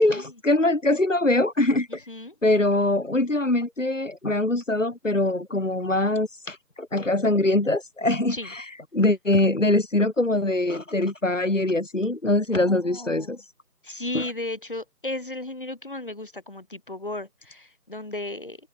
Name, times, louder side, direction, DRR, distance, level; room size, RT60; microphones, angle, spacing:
voice 1, 0.0-2.0 2.4-13.5 14.1-14.3, left 2 dB, 50° left, 6.2 m, -23 dB
voice 2, 1.9-2.3 8.3-8.5 12.5-13.4 13.8-18.6, left 2 dB, 30° left, 6.0 m, -35 dB
open air
figure-of-eight pair, 180°, 48 cm